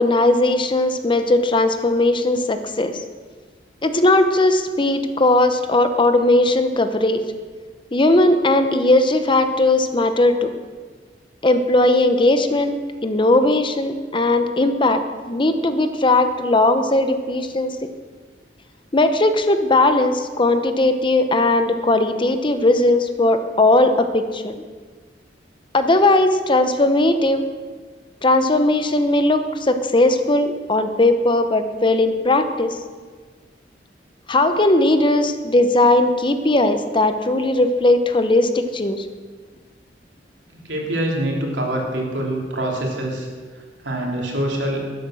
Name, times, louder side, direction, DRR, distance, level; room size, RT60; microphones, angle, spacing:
voice 1, 0.0-3.0 3.8-7.2 7.9-10.5 11.4-12.8 13.0-15.0 15.3-17.8 18.9-24.6 25.7-27.5 28.2-32.8 34.3-39.1, left 2 dB, 30° left, 9 dB, 0.8 m, -18 dB
voice 2, 40.7-43.3 43.8-44.8, right 1 dB, 85° right, -1 dB, 3.3 m, -24 dB
12.5 x 11.0 x 6.4 m, 1.5 s
head